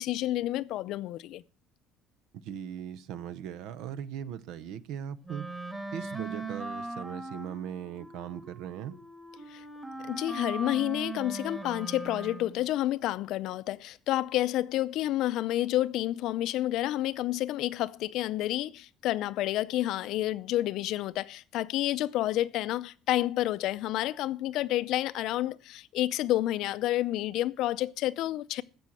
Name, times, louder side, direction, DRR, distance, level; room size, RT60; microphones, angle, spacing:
voice 1, 0.0-1.4 9.5-9.6 10.1-28.6, left 14 dB, 65° left, 0.5 m, -29 dB
voice 2, 2.4-5.5 5.9-9.0, right 9 dB, 75° right, 0.8 m, -39 dB
Wind instrument woodwind instrument, 5.2-12.7, right 2 dB, 10° right, 1.6 m, -40 dB
15.5 x 6.3 x 6.3 m
cardioid pair, 155°, 0 cm